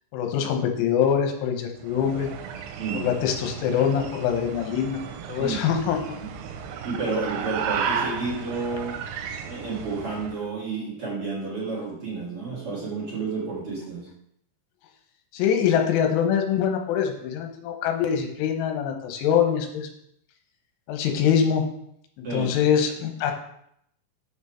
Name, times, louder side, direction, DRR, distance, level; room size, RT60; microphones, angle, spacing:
voice 1, 0.1-2.3 2.9-5.0 5.3-6.0 15.3-19.9 20.9-21.7 22.2-23.3, left 8 dB, 80° left, 4 dB, 3.3 m, -24 dB
sound 1, 1.8-10.5, right 7 dB, 85° right, 3.3 m, -34 dB
voice 2, 6.8-9.0 9.4-14.1 22.2-22.6, right 4 dB, 55° right, -6 dB, 1.5 m, -31 dB
7.0 x 6.1 x 4.3 m, 0.73 s
omnidirectional pair, 5.8 m